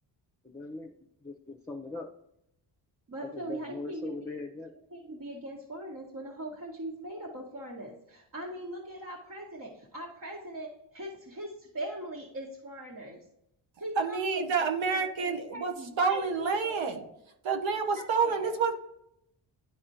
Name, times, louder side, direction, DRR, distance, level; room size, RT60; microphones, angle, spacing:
voice 1, 0.4-0.9 1.2-2.1 3.2-4.7, left 2 dB, 5° left, 0 dB, 0.8 m, -40 dB
voice 2, 3.1-4.1 4.9-10.7 10.9-11.5 11.7-13.2 13.8-14.7 15.2-16.2 16.6-17.1 18.0-18.5, right 1 dB, 45° right, -3 dB, 1.6 m, -40 dB
voice 3, 14.0-17.0 17.4-18.7, right 5 dB, 75° right, 4 dB, 1.1 m, -28 dB
11.0 x 4.2 x 2.9 m, 0.79 s
cardioid pair, 95°, 46 cm